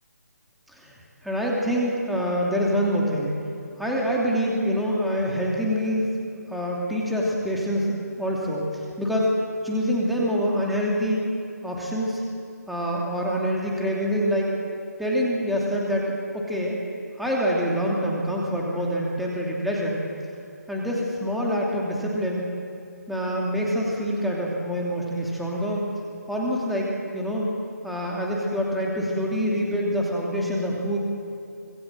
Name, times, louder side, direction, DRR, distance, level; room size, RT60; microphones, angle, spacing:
voice 1, 1.2-3.3 3.8-6.1 6.5-9.4 9.6-11.2 11.6-12.2 12.7-14.5 15.0-16.8 17.2-20.0 20.7-22.6 23.1-25.8 26.3-27.5 27.8-31.0, equal, ahead, -4 dB, 2.8 m, -26 dB
26.0 x 20.5 x 7.6 m, 2.5 s
figure-of-eight pair, 155°, 9 cm